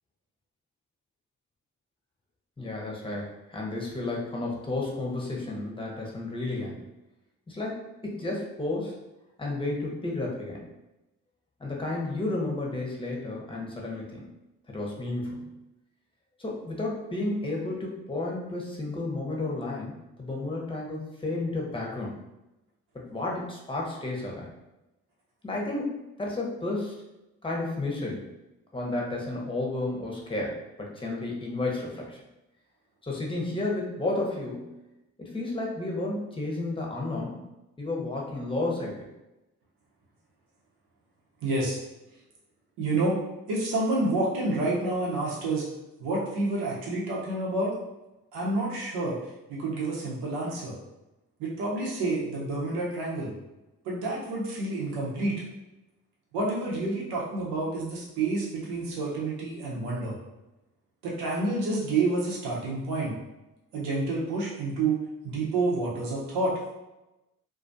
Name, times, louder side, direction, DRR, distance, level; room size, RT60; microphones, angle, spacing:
voice 1, 2.6-6.8 7.5-9.0 9.4-10.7 11.6-14.3 14.7-15.5 16.4-22.2 22.9-24.5 25.4-27.0 27.4-28.3 28.7-32.2 33.0-34.7 35.2-37.4 37.8-39.0, left 2 dB, 15° left, -2 dB, 0.8 m, -32 dB
voice 2, 41.4-41.8 42.8-43.2 43.5-45.7 46.0-47.7 48.3-49.2 49.5-50.7 51.4-53.3 53.8-55.4 56.3-60.2 61.0-63.1 63.7-65.0 65.2-66.5, right 2 dB, 80° right, -4 dB, 0.8 m, -29 dB
2.3 x 2.2 x 2.6 m, 0.98 s
supercardioid pair, 50°, 39 cm